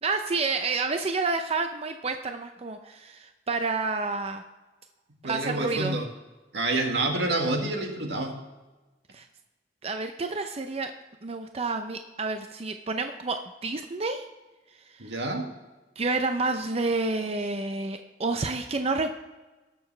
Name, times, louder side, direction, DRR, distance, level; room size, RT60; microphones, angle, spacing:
voice 1, 0.0-4.4 5.2-6.0 9.1-9.3 9.8-10.9 11.2-14.3 14.9-15.2 16.0-19.1, right 3 dB, 35° right, 6 dB, 0.6 m, -29 dB
voice 2, 5.2-6.1 6.5-8.3 15.0-15.5, right 2 dB, 80° right, 2 dB, 1.8 m, -28 dB
19.0 x 6.9 x 3.3 m, 1.2 s
head